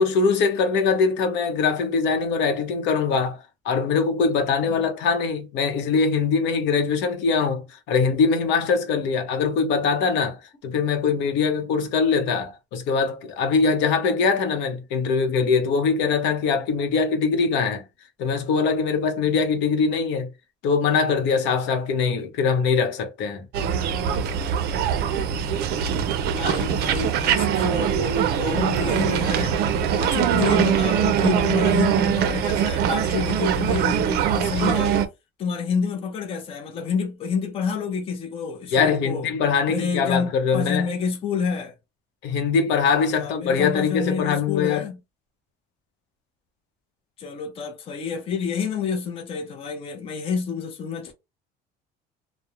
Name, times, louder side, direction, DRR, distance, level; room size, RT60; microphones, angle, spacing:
voice 1, 0.0-3.4 3.6-10.4 10.6-17.8 18.2-20.3 20.6-23.5 38.7-40.9 42.2-44.9, left 5 dB, 75° left, 0.7 m, -22 dB
sound 1, 23.5-35.1, right 8 dB, 60° right, 0.4 m, -22 dB
voice 2, 26.3-29.6 30.0-35.0 35.4-39.3 39.7-41.8 43.2-45.0 47.2-51.1, left 6 dB, 30° left, 0.5 m, -28 dB
2.3 x 2.0 x 2.9 m
cardioid pair, 145°, 19 cm